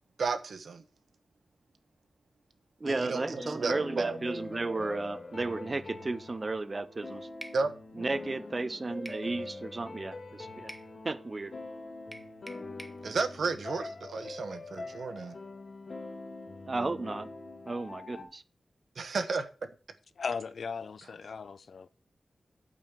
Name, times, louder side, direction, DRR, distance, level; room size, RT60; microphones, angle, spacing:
voice 1, 0.2-0.8 2.9-4.2 7.5-7.7 13.0-15.4 19.0-19.7, right 4 dB, 65° right, 1.1 m, -33 dB
sound 1, 2.8-18.2, left 3 dB, 40° left, 1.8 m, -44 dB
voice 2, 2.8-7.3 8.0-10.7 11.0-11.6 16.7-17.3 17.7-18.4, right 3 dB, 30° right, 0.5 m, -34 dB
sound 2, 7.4-7.6 9.1-9.3 10.7-10.9 12.1-13.0, right 1 dB, 5° right, 0.9 m, -46 dB
voice 3, 20.2-21.9, left 5 dB, 65° left, 0.5 m, -37 dB
8.7 x 5.4 x 7.1 m
wide cardioid pair, 170°, 0 cm